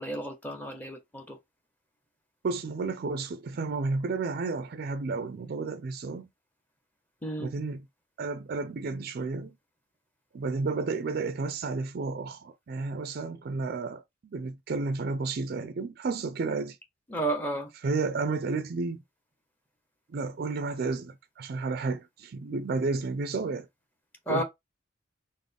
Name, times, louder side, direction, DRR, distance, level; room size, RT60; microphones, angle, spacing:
voice 1, 0.0-1.4 7.2-7.5 17.1-17.7 24.3-24.4, right 1 dB, 10° left, 0.7 m, -32 dB
voice 2, 2.4-6.3 7.4-7.8 8.2-9.5 10.3-16.8 17.8-19.0 20.1-23.7 24.3-24.4, right 3 dB, 50° right, 0.4 m, -32 dB
3.8 x 2.1 x 3.3 m
head